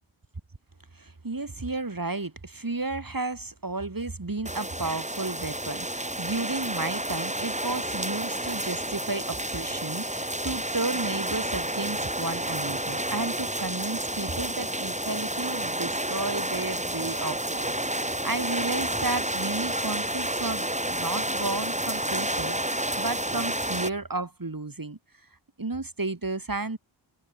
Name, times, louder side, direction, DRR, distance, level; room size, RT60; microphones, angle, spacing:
voice 1, 0.9-25.0 25.6-26.8, right 3 dB, 40° right, 6.0 m, -33 dB
sound 1, 4.4-23.9, right 1 dB, 15° right, 7.9 m, -30 dB
wide cardioid pair, 80°, 50 cm